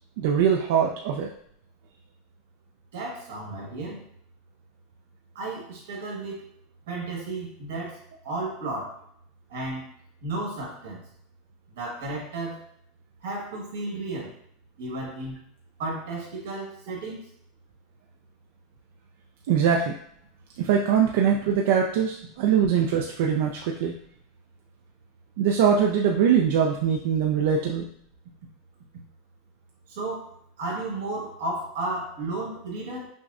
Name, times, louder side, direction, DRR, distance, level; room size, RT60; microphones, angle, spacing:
voice 1, 0.2-1.3 19.5-19.9 20.6-23.9 25.4-27.9, right 7 dB, 60° right, 0 dB, 0.4 m, -22 dB
voice 2, 2.9-4.0 5.3-6.5 6.9-8.0 8.2-9.0 9.5-9.9 10.2-11.0 11.7-12.6 13.2-14.3 14.8-15.4 15.8-17.2 29.9-30.3 30.6-33.1, right 2 dB, 90° right, -2 dB, 1.4 m, -33 dB
6.0 x 2.1 x 2.4 m, 0.67 s
supercardioid pair, 175°, 0 cm